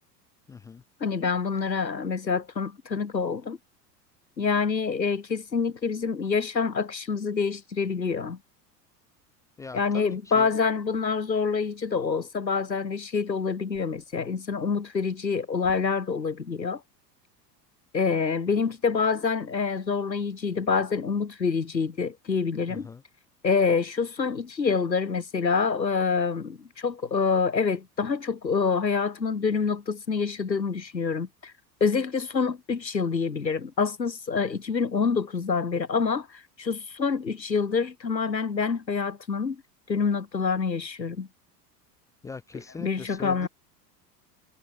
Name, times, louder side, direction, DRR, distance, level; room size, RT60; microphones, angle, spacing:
voice 1, 0.5-0.8 9.6-10.5 22.7-23.0 42.2-43.5, left 5 dB, 10° left, 0.3 m, -41 dB
voice 2, 1.0-3.6 4.4-8.4 9.7-16.8 17.9-22.9 23.4-31.5 31.8-39.6 39.9-41.3 42.5-43.5, left 5 dB, 90° left, 2.1 m, -26 dB
figure-of-eight pair, 80°, 49 cm